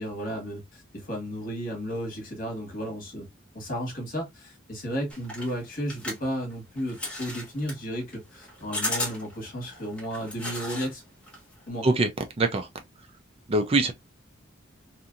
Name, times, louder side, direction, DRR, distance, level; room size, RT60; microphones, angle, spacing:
voice 1, 0.0-3.3 3.5-11.0 11.7-11.9, equal, 45° left, 1.3 m, -33 dB
sound 1, 5.1-10.9 11.2-11.7, left 1 dB, 5° left, 0.9 m, -35 dB
voice 2, 12.4-12.7 13.5-13.9, right 2 dB, 30° right, 0.4 m, -22 dB
2.8 x 2.6 x 2.4 m
head